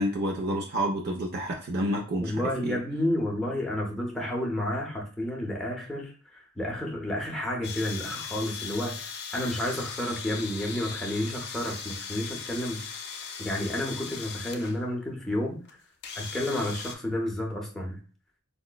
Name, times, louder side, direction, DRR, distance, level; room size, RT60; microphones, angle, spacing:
voice 1, 0.0-2.8, equal, 45° right, 0 dB, 0.4 m, -29 dB
voice 2, 2.2-13.0 13.4-15.6 16.1-18.0, left 1 dB, ahead, -2 dB, 0.6 m, -31 dB
sound 1, 7.6-14.8 15.6-15.7 16.0-16.9, left 6 dB, 50° left, 0.5 m, -38 dB
4.7 x 2.0 x 2.2 m, 0.38 s
head